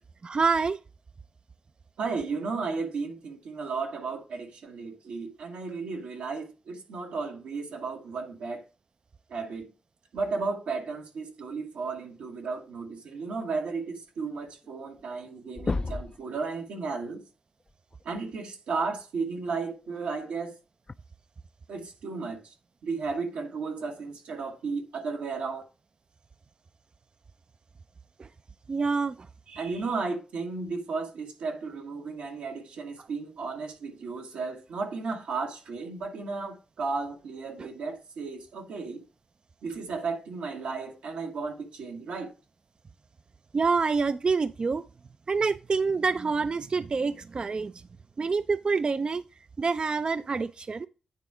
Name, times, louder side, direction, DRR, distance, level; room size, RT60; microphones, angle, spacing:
voice 1, 0.2-0.8 28.2-28.3 28.7-29.1 37.6-37.7 43.5-44.8 45.3-47.7 48.2-49.2 49.6-50.9, right 4 dB, 50° right, 0.3 m, -26 dB
voice 2, 2.0-8.6 9.3-9.7 10.1-17.2 18.0-20.5 21.7-22.5 22.8-25.6 29.5-39.0 39.6-42.3, right 4 dB, 90° right, 1.5 m, -34 dB
sound 1, 14.6-14.7 15.0-15.3 15.5-16.2 17.9-18.0 19.9-20.0 20.9-21.0, left 3 dB, 35° left, 0.3 m, -31 dB
9.2 x 3.5 x 4.8 m
supercardioid pair, 40°, 2 cm